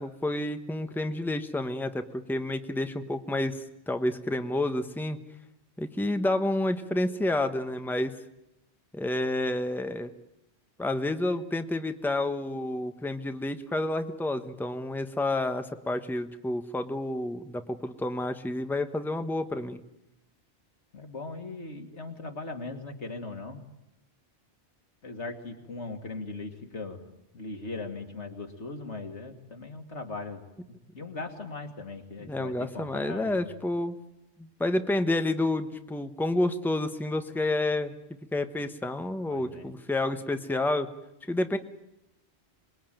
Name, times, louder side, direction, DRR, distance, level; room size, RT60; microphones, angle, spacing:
voice 1, 0.0-5.2 5.8-8.1 8.9-10.1 10.8-19.8 32.3-34.0 34.4-37.9 38.3-40.9 41.3-41.6, left 1 dB, ahead, 8 dB, 1.1 m, -29 dB
voice 2, 20.9-23.6 25.0-30.5 30.9-33.5 39.3-39.7, left 3 dB, 90° left, 4 dB, 2.8 m, -39 dB
26.5 x 20.5 x 9.2 m, 0.87 s
omnidirectional pair, 1.1 m